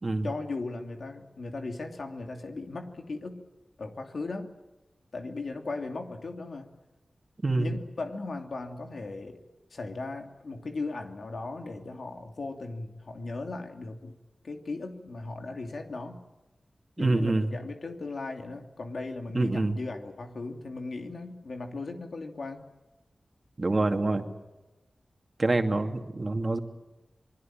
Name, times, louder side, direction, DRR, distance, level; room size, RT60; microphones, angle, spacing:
voice 1, 0.2-3.4 3.8-4.5 5.1-6.7 7.6-9.4 9.7-14.2 14.4-16.2 17.0-22.7, left 3 dB, 75° left, 4 dB, 2.8 m, -37 dB
voice 2, 17.0-17.6 19.3-19.8 23.6-24.2 25.4-26.6, right 2 dB, 45° right, 5 dB, 2.6 m, -26 dB
27.0 x 21.0 x 9.0 m, 1.0 s
cardioid pair, 50°, 0 cm